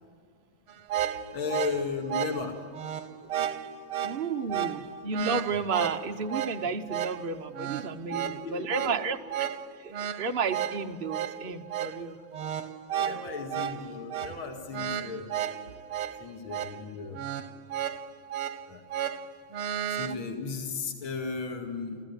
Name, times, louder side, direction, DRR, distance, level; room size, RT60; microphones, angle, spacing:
sound 1, 0.7-20.1, right 10 dB, 90° right, 1.9 m, -34 dB
voice 1, 1.3-2.6 8.1-9.2 12.9-15.3 16.2-17.2 18.7-18.8 19.9-22.0, left 4 dB, 70° left, 2 dB, 2.9 m, -35 dB
voice 2, 4.0-8.2 8.5-9.5 9.8-12.2, right 5 dB, 60° right, 4 dB, 0.5 m, -32 dB
29.5 x 15.0 x 9.6 m, 2.2 s
omnidirectional pair, 2.4 m